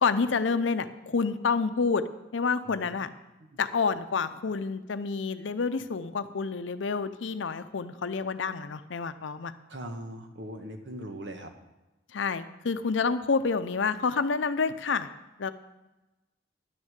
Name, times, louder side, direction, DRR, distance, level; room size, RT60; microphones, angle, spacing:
voice 1, 0.0-2.0 2.3-3.1 3.6-9.5 12.1-15.1 15.4-15.5, left 5 dB, 80° left, 12 dB, 0.6 m, -28 dB
voice 2, 2.6-3.0 3.4-3.5 9.7-11.5, right 1 dB, 65° right, 5 dB, 1.3 m, -40 dB
10.5 x 6.4 x 7.4 m, 1.0 s
head